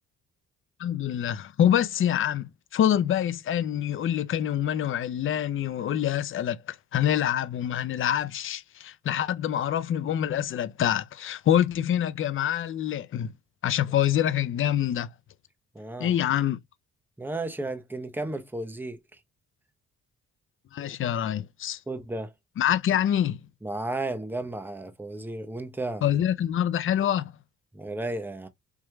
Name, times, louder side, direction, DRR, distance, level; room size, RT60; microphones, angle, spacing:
voice 1, 0.8-13.3 13.6-15.1 16.0-16.6 20.7-21.8 22.6-23.4 26.0-27.3, left 10 dB, 45° left, 0.5 m, -26 dB
voice 2, 15.7-16.1 17.2-19.0 21.9-22.3 23.6-26.0 27.7-28.5, right 2 dB, 5° right, 0.8 m, -33 dB
4.6 x 3.1 x 2.2 m
cardioid pair, 90°, 30 cm